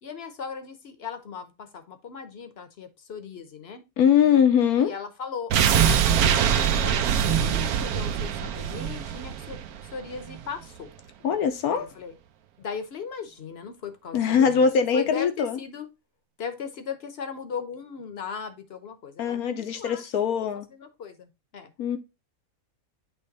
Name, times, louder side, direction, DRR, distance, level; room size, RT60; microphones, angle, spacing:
voice 1, 0.0-3.8 4.8-10.9 11.7-12.1 12.6-15.9 16.4-20.0 20.4-21.7, left 6 dB, 50° left, 0.9 m, -38 dB
voice 2, 4.0-4.9 11.2-11.9 14.1-15.6 19.2-20.7 21.8-22.0, left 7 dB, 90° left, 1.4 m, -22 dB
sound 1, 5.5-10.5 10.8-10.9, right 8 dB, 85° right, 1.1 m, -23 dB
8.2 x 3.2 x 4.0 m
omnidirectional pair, 1.5 m